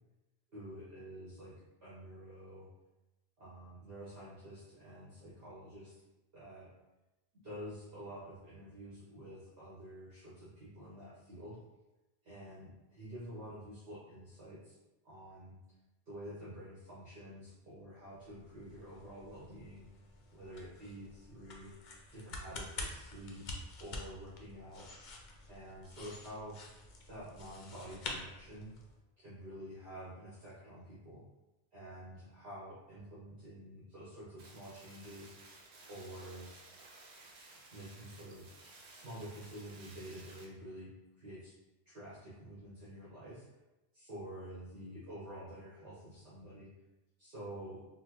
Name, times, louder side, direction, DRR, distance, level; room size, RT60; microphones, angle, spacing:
voice 1, 0.5-1.5 1.8-2.7 3.4-6.0 6.3-6.7 7.3-11.6 12.2-14.8 15.0-15.6 16.1-19.8 20.3-24.9 25.5-26.6 27.0-28.7 29.2-31.2 31.7-35.4 35.9-36.5 37.7-38.5 38.9-40.9 41.2-41.6 41.9-43.4 43.9-46.7 47.2-47.8, equal, 65° right, -10 dB, 1.2 m, -49 dB
sound 1, 18.2-29.0, left 2 dB, 55° left, 0.6 m, -48 dB
sound 2, 34.4-40.4, right 3 dB, 85° right, 0.9 m, -56 dB
4.2 x 2.0 x 2.9 m, 1.0 s
omnidirectional pair, 1.1 m